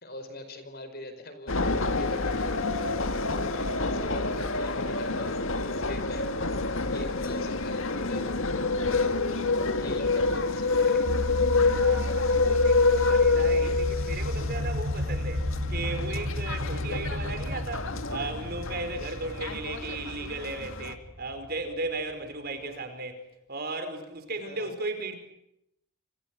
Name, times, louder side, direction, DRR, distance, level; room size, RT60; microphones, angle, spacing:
voice 1, 0.0-3.0 3.5-8.4 9.0-11.1 22.6-22.9 24.4-24.7, left 1 dB, 45° left, 5.0 m, -42 dB
sound 1, 1.5-21.0, left 3 dB, 65° left, 1.9 m, -27 dB
voice 2, 3.6-4.1 11.7-25.2, right 2 dB, 45° right, 5.0 m, -36 dB
sound 2, 11.0-22.5, left 1 dB, 90° right, 7.7 m, -33 dB
sound 3, 13.6-19.0, left 1 dB, 90° left, 2.4 m, -42 dB
29.0 x 28.0 x 6.2 m
head